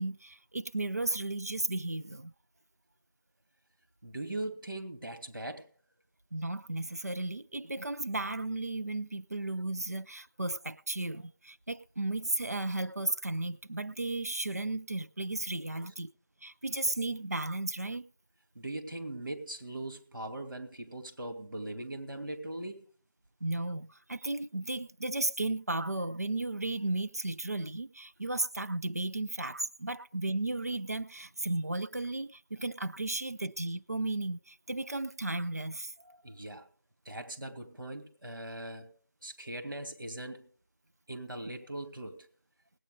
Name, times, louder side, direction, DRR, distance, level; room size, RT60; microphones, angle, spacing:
voice 1, 0.0-2.3 6.3-16.1 16.4-18.0 23.4-35.9, right 2 dB, 45° right, 0.6 m, -34 dB
voice 2, 4.0-5.7 15.7-15.9 18.5-22.8 36.0-36.7 37.0-39.0 39.2-40.5 41.1-42.3, right 1 dB, 65° right, 2.6 m, -40 dB
17.5 x 8.9 x 5.1 m
figure-of-eight pair, 180°, 11 cm